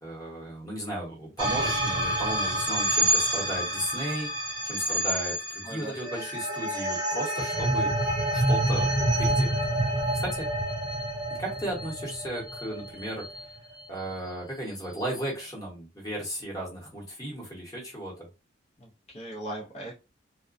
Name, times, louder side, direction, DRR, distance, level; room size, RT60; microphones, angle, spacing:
voice 1, 0.0-4.3 4.6-7.9 8.3-8.9 9.2-9.5 10.1-10.5 11.4-13.3 13.9-18.3, right 1 dB, 20° left, -2 dB, 1.0 m, -35 dB
sound 1, 1.4-13.8, right 1 dB, 25° right, 0.7 m, -28 dB
voice 2, 5.6-6.0 7.8-7.9 18.8-20.0, right 1 dB, 35° left, -2 dB, 0.5 m, -39 dB
2.4 x 2.1 x 2.4 m, 0.28 s
head